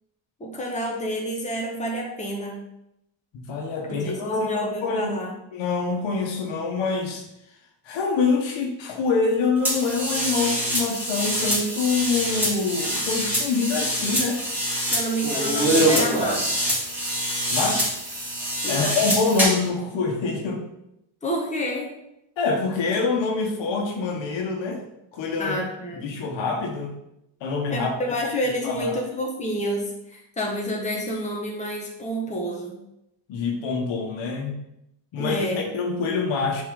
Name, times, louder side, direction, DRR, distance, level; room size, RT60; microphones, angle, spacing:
voice 1, 0.4-2.6 3.9-5.3 14.9-16.8 18.6-18.9 21.2-21.9 25.4-26.1 27.7-32.8 35.2-35.7, equal, 15° left, -2 dB, 1.6 m, -29 dB
voice 2, 3.3-5.1 5.5-7.2 7.8-14.4 17.5-18.0 18.7-20.7 22.4-24.8 25.1-25.6 26.0-26.9 27.4-27.9 28.6-28.9 33.3-34.6 35.1-35.5 35.7-36.6, left 4 dB, 75° left, 1 dB, 1.6 m, -25 dB
sound 1, 9.6-19.7, right 1 dB, 5° right, 3.0 m, -25 dB
10.5 x 4.3 x 4.0 m, 0.84 s
cardioid pair, 155°, 45 cm